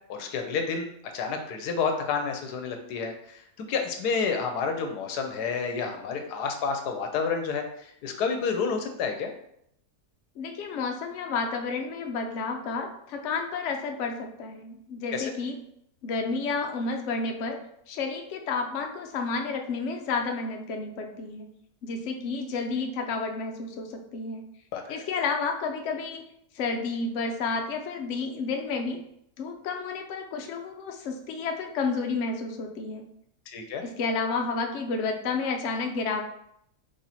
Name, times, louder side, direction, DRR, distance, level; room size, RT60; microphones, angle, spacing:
voice 1, 0.1-9.3 15.1-15.3 24.7-25.0 33.5-33.8, left 5 dB, 80° left, 5 dB, 1.2 m, -30 dB
voice 2, 10.4-15.6 16.0-17.6 17.9-21.5 21.8-24.4 24.9-26.3 26.5-29.0 29.4-33.0 33.8-36.2, left 4 dB, 60° left, 3 dB, 0.8 m, -31 dB
4.3 x 3.0 x 4.1 m, 0.73 s
omnidirectional pair, 1.7 m